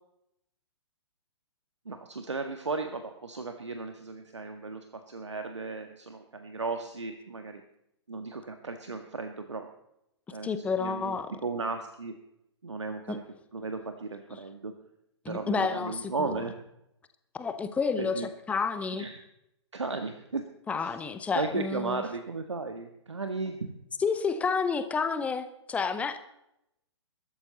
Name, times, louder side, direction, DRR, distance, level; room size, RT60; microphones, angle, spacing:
voice 1, 1.8-7.6 8.1-9.7 10.3-11.2 11.4-12.1 12.6-13.2 13.5-14.7 15.3-16.6 18.0-18.3 19.0-19.2 19.7-20.4 20.8-21.0 21.3-23.7, right 3 dB, 75° right, 6 dB, 1.7 m, -35 dB
voice 2, 10.4-11.3 13.1-13.2 15.2-16.4 17.3-19.1 20.7-22.0 24.0-26.2, left 5 dB, 10° left, 11 dB, 0.9 m, -30 dB
21.5 x 13.0 x 4.1 m, 0.82 s
figure-of-eight pair, 120°, 15 cm